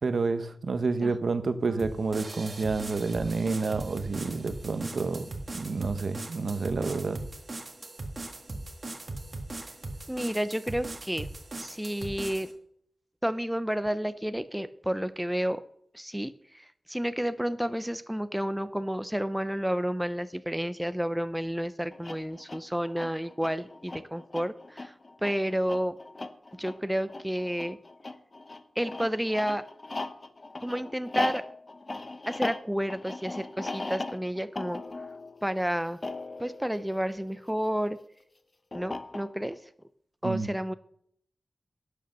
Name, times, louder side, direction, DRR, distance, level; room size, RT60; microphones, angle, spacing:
voice 1, 0.0-7.2 40.2-40.5, right 4 dB, 65° right, 10 dB, 0.9 m, -29 dB
sound 1, 1.8-12.5, right 2 dB, 40° right, 1.6 m, -39 dB
voice 2, 10.1-11.3 11.6-12.5 13.2-15.6 15.9-24.9 25.2-26.0 26.6-27.8 28.8-29.6 30.6-31.4 32.3-34.8 35.4-36.0 36.4-38.0 38.7-39.6 40.2-40.7, equal, 5° right, 13 dB, 0.4 m, -31 dB
sound 2, 21.9-37.7 38.7-39.6, left 2 dB, 35° left, 0.7 m, -38 dB
11.0 x 6.8 x 6.5 m, 0.67 s
wide cardioid pair, 120°, 0 cm